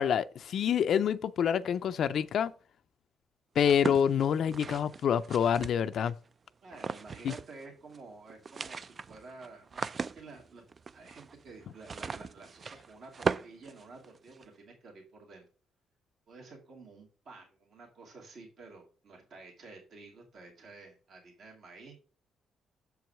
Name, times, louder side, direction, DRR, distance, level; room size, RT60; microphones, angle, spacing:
voice 1, 0.0-2.5 3.6-6.1 7.2-7.3, left 8 dB, 65° left, 0.4 m, -27 dB
sound 1, 3.6-6.1 6.7-7.6 7.9-8.0 8.3-14.4, right 5 dB, 40° right, 0.3 m, -38 dB
voice 2, 6.6-10.6 10.9-15.5 16.3-22.0, right 3 dB, 65° right, 2.4 m, -51 dB
6.9 x 4.7 x 6.7 m
cardioid pair, 90°, 0 cm